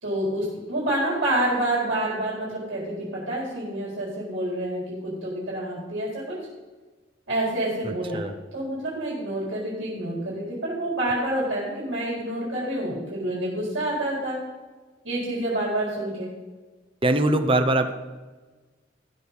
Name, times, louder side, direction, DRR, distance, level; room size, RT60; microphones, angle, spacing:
voice 1, 0.0-6.4 7.3-8.2 8.5-14.4 15.0-16.3, right 1 dB, 80° right, -6 dB, 4.3 m, -28 dB
voice 2, 7.8-8.3 17.0-17.9, right 1 dB, 30° right, 8 dB, 0.9 m, -22 dB
15.0 x 6.6 x 5.5 m, 1.3 s
head